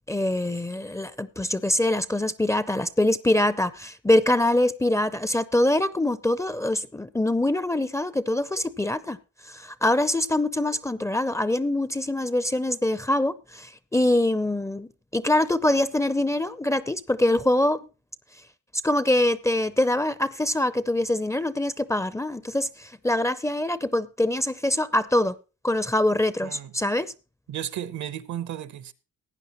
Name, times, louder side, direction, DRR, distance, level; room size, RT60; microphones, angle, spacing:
voice 1, 0.0-9.2 9.5-17.8 18.8-25.4 25.6-27.1, left 1 dB, 10° left, 0.5 m, -24 dB
voice 2, 26.4-26.7 27.5-28.9, right 10 dB, 70° right, 0.9 m, -34 dB
16.0 x 9.3 x 3.0 m
cardioid pair, 90°, 30 cm